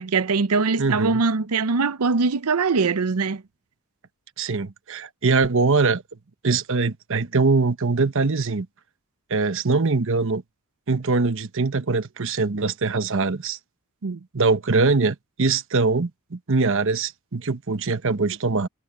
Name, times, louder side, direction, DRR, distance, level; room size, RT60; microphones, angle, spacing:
voice 1, 0.0-3.4 14.0-14.2, right 4 dB, 85° right, 0.7 m, -22 dB
voice 2, 0.8-1.2 4.4-6.0 6.4-8.7 9.3-10.4 10.9-13.6 14.3-18.7, right 3 dB, 60° right, 1.0 m, -22 dB
head